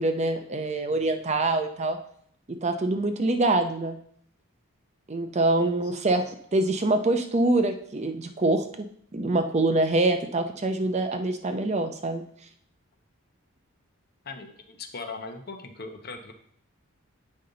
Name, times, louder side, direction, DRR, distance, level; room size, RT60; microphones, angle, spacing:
voice 1, 0.0-2.0 2.6-4.0 5.1-6.2 6.5-8.9 9.1-12.2, right 2 dB, 30° right, 6 dB, 0.6 m, -25 dB
voice 2, 5.6-5.9 14.2-16.3, left 4 dB, 45° left, 6 dB, 0.8 m, -40 dB
8.4 x 5.3 x 3.8 m, 0.64 s
head